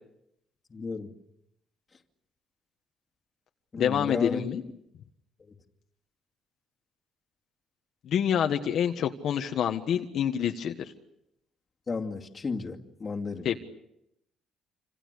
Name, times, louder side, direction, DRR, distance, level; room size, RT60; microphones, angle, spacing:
voice 1, 0.7-1.1 3.7-4.5 5.5-5.6 11.9-13.5, left 4 dB, 25° left, 1 dB, 2.4 m, -33 dB
voice 2, 3.8-4.6 8.0-10.9 13.4-13.6, left 9 dB, 60° left, 5 dB, 1.5 m, -27 dB
28.0 x 26.5 x 6.8 m, 0.81 s
cardioid pair, 135°, 0 cm